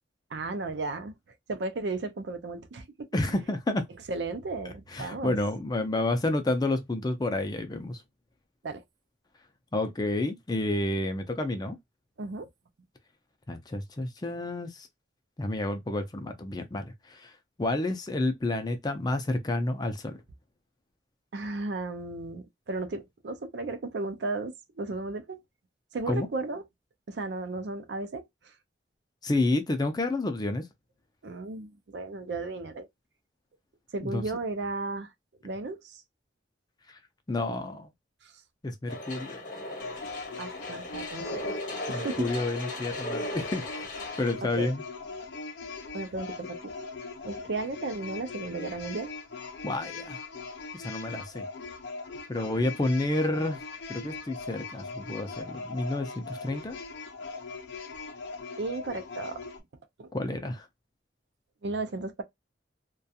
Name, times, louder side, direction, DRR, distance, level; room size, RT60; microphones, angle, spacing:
voice 1, 0.3-1.1 1.5-3.1 4.1-5.4 8.6-8.8 12.2-12.5 21.3-25.4 25.9-26.6 27.1-28.3 31.2-32.9 33.9-35.1 35.4-36.0 38.2-38.3 40.4-41.5 41.9-42.3 44.4-44.7 45.9-46.7 47.2-49.1 58.6-59.5 60.0-60.1 61.6-62.2, right 3 dB, 70° right, 0.5 m, -34 dB
voice 2, 3.1-3.9 4.9-8.0 9.7-11.8 13.5-14.9 15.4-17.3 17.6-20.1 26.1-26.3 29.2-30.7 34.0-34.2 36.9-37.0 37.3-37.9 38.6-39.4 41.9-43.7 44.2-44.8 49.6-50.2 50.7-51.5 52.3-53.6 53.9-56.8 60.1-60.7, left 2 dB, 20° left, 0.4 m, -30 dB
sound 1, 38.9-44.3, left 1 dB, 45° left, 0.9 m, -37 dB
sound 2, 39.8-59.6, left 4 dB, 75° left, 0.5 m, -40 dB
2.4 x 2.3 x 2.6 m
head